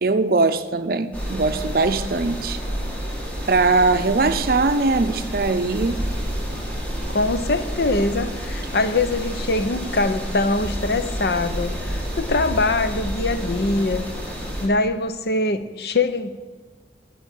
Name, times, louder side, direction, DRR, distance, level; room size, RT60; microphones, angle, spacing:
voice 1, 0.0-2.6 3.5-6.0, right 3 dB, 55° right, 9 dB, 0.6 m, -20 dB
sound 1, 1.1-14.7, equal, 10° left, 1.5 m, -29 dB
voice 2, 7.1-14.1 14.6-16.3, left 2 dB, 60° left, 10 dB, 0.6 m, -23 dB
13.0 x 4.7 x 8.0 m, 1.5 s
head